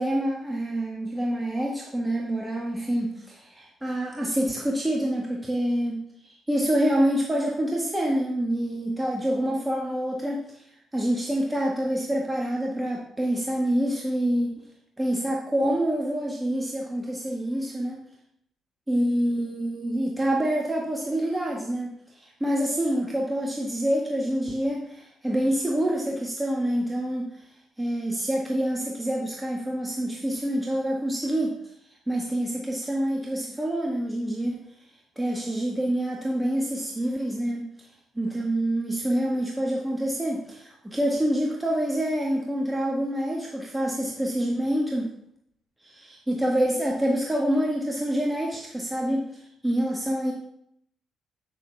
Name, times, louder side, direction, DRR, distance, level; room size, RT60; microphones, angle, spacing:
voice 1, 0.0-10.6 10.9-14.6 15.0-18.0 18.9-27.4 27.8-31.6 32.1-34.6 35.1-37.7 38.1-45.1 45.8-50.3, right 1 dB, 15° right, -2 dB, 1.6 m, -27 dB
8.2 x 6.9 x 3.5 m, 0.71 s
hypercardioid pair, 45°, 0 cm